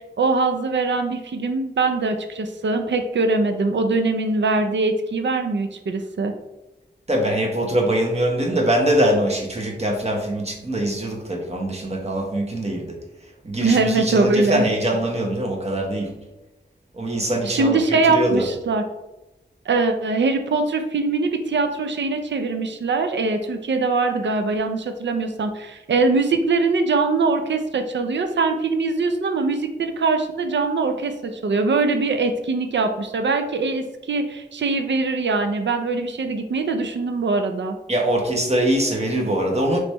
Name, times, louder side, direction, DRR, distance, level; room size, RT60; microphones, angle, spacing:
voice 1, 0.0-6.3 13.6-14.6 17.4-18.8 19.7-37.8, right 3 dB, 85° right, 6 dB, 0.5 m, -22 dB
voice 2, 7.1-13.0 13.4-16.1 16.9-18.5 37.9-39.8, right 1 dB, 35° right, 0 dB, 1.0 m, -23 dB
5.1 x 3.2 x 3.0 m, 1.0 s
wide cardioid pair, 85°, 18 cm